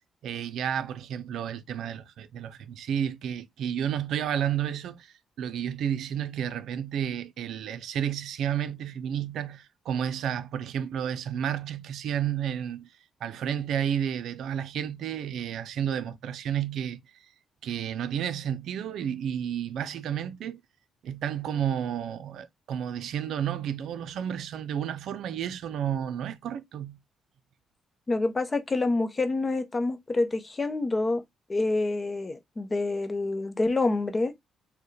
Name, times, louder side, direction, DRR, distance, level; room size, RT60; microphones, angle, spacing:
voice 1, 0.2-12.9 13.2-17.3 17.6-20.6 21.0-27.0, right 9 dB, 75° right, 0.5 m, -31 dB
voice 2, 28.1-31.2 31.5-34.3, left 2 dB, 25° left, 0.7 m, -27 dB
4.5 x 2.2 x 3.1 m
cardioid pair, 90°, 0 cm